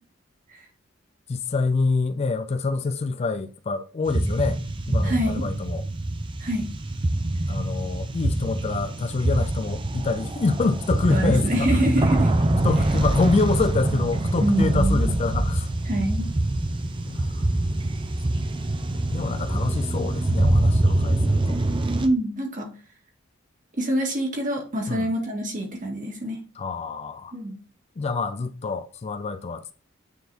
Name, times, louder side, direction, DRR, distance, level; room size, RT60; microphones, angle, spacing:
voice 1, 1.3-4.6 4.9-5.8 7.5-12.1 12.6-15.7 17.1-17.5 19.1-21.6 24.9-25.1 26.6-27.3 28.0-29.7, left 4 dB, 30° left, 0.3 m, -26 dB
sound 1, 4.1-22.1, right 1 dB, 25° right, 0.6 m, -24 dB
voice 2, 5.0-5.5 6.4-6.7 11.1-12.3 14.4-15.1 15.9-16.3 22.0-22.7 23.8-26.4 27.3-27.6, right 1 dB, 40° right, 1.9 m, -25 dB
9.2 x 4.0 x 2.8 m
head